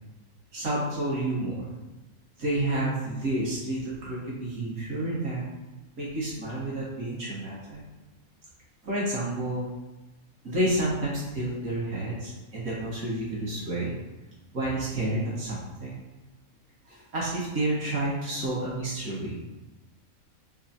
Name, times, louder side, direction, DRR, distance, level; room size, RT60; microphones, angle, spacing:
voice 1, 0.5-1.7 2.4-5.4 6.0-7.8 8.8-9.7 10.4-14.0 14.5-16.0 16.9-19.4, right 1 dB, 75° right, -7 dB, 2.0 m, -30 dB
5.0 x 3.6 x 2.8 m, 1.1 s
omnidirectional pair, 1.5 m